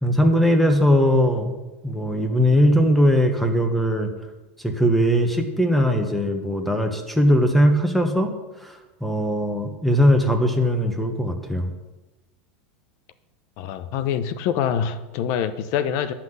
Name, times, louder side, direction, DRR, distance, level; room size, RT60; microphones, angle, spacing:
voice 1, 0.0-1.5 1.8-4.1 4.6-8.3 8.6-11.7, equal, ahead, 1.3 m, -20 dB
voice 2, 13.6-16.1, left 8 dB, 55° left, 0.9 m, -25 dB
10.5 x 5.9 x 8.0 m
supercardioid pair, 140°, 6 cm